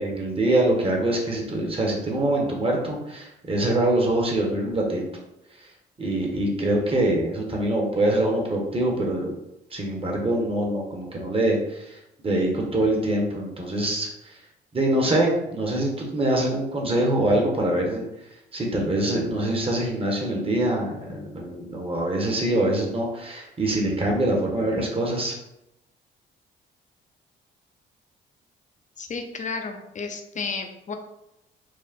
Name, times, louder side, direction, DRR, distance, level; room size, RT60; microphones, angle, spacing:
voice 1, 0.0-5.0 6.0-9.3 9.7-12.0 12.2-14.3 14.7-18.0 18.5-25.3, right 1 dB, 30° right, 0 dB, 1.3 m, -24 dB
voice 2, 29.0-30.9, left 4 dB, 40° left, 5 dB, 0.7 m, -32 dB
4.8 x 2.1 x 4.3 m, 0.86 s
cardioid pair, 90°, 20 cm